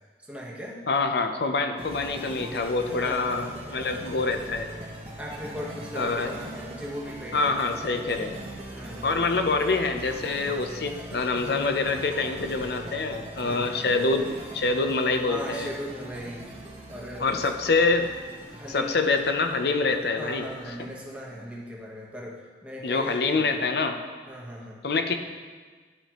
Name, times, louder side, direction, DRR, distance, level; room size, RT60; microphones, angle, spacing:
voice 1, 0.2-0.8 2.5-3.6 5.2-7.7 8.7-9.4 13.4-13.9 15.3-16.5 16.9-17.6 18.5-19.2 20.2-23.6 24.3-24.8, equal, 5° right, -4 dB, 1.1 m, -38 dB
voice 2, 0.9-4.7 6.0-6.3 7.3-8.4 9.0-15.7 17.2-18.1 18.7-20.5 22.8-24.0 24.8-25.1, left 3 dB, 65° left, 6 dB, 0.6 m, -26 dB
sound 1, 1.8-21.1, right 1 dB, 35° right, 1.3 m, -41 dB
11.5 x 5.1 x 3.0 m, 1.5 s
head